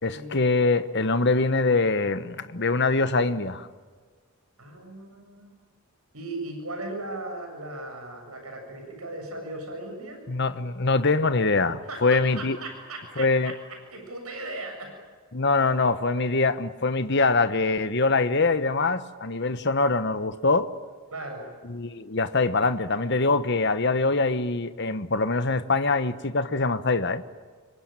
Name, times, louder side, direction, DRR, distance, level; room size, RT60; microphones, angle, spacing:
voice 1, 0.0-3.7 10.3-12.6 13.2-13.5 15.3-20.7 21.6-27.2, left 3 dB, 50° left, 1.1 m, -24 dB
voice 2, 4.6-5.5 6.1-10.2 11.9-14.9 21.1-21.4, right 2 dB, 80° right, 7.4 m, -37 dB
26.5 x 23.5 x 9.0 m
head